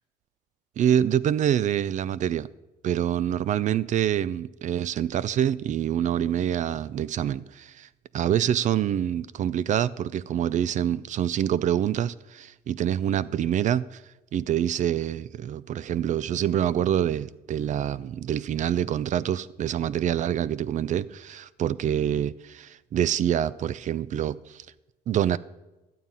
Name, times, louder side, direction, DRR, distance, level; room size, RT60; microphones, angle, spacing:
voice 1, 0.8-2.5 2.8-7.9 8.1-14.0 14.3-24.7 25.1-25.4, right 10 dB, 45° right, 0.4 m, -26 dB
12.0 x 7.4 x 5.4 m
cardioid pair, 110°, 17 cm